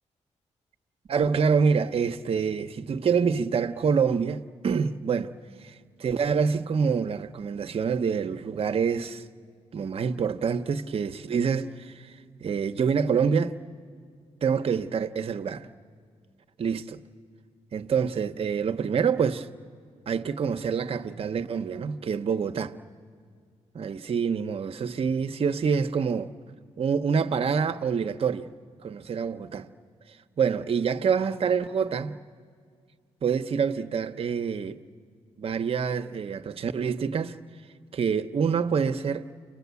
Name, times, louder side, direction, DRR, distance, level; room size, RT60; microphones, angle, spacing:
voice 1, 1.1-5.3 5.6-9.3 9.7-13.6 14.4-15.7 16.6-17.0 17.7-19.5 20.1-22.7 23.7-26.3 26.8-28.5 28.8-29.7 30.1-32.2 33.2-34.8 35.4-37.4 37.9-39.3, right 6 dB, 50° right, 0.8 m, -26 dB
29.5 x 24.5 x 8.2 m
cardioid pair, 105°, 12 cm